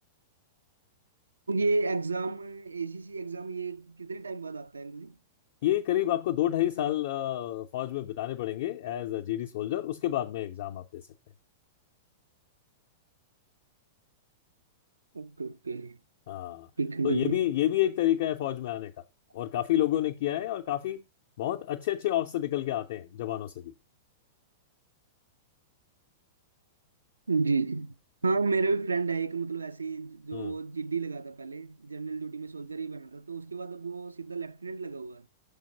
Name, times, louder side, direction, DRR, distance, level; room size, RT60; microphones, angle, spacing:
voice 1, 1.5-5.2 15.1-16.0 16.8-17.4 27.3-28.0 28.2-35.2, right 4 dB, 80° right, 0.3 m, -31 dB
voice 2, 5.6-11.0 16.3-16.7 17.0-18.9 19.3-21.0 21.4-23.7 30.3-30.6, left 13 dB, 50° left, 0.4 m, -29 dB
6.2 x 3.4 x 5.6 m
figure-of-eight pair, 100°, 0 cm